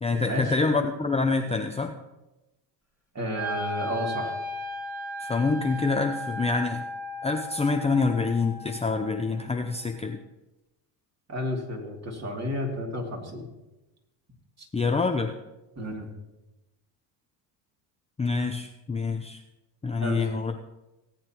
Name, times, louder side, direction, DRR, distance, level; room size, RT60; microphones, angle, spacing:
voice 1, 0.0-1.9 5.2-6.8 7.2-10.2 14.7-15.3 18.2-19.4 19.8-20.7, left 4 dB, 15° left, 4 dB, 0.6 m, -26 dB
voice 2, 3.1-4.3 11.3-13.5 14.6-14.7 15.8-16.1 20.0-20.2, left 1 dB, 35° right, 0 dB, 2.9 m, -31 dB
Wind instrument woodwind instrument, 3.3-9.4, left 1 dB, 5° right, 2.7 m, -36 dB
18.0 x 8.6 x 3.0 m, 1.0 s
supercardioid pair, 80°, 47 cm